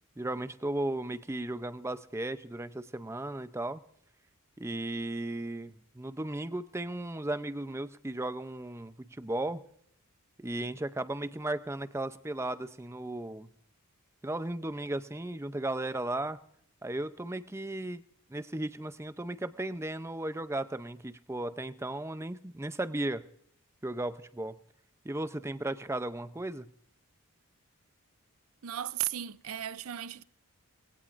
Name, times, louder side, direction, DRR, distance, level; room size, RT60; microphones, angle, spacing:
voice 1, 0.2-3.8 4.6-9.6 10.4-13.5 14.2-16.4 16.8-18.0 18.3-23.3 23.8-24.6 25.0-26.7, right 1 dB, 10° right, 0.6 m, -35 dB
voice 2, 28.6-30.2, right 11 dB, 70° right, 0.5 m, -35 dB
19.5 x 17.0 x 2.6 m
head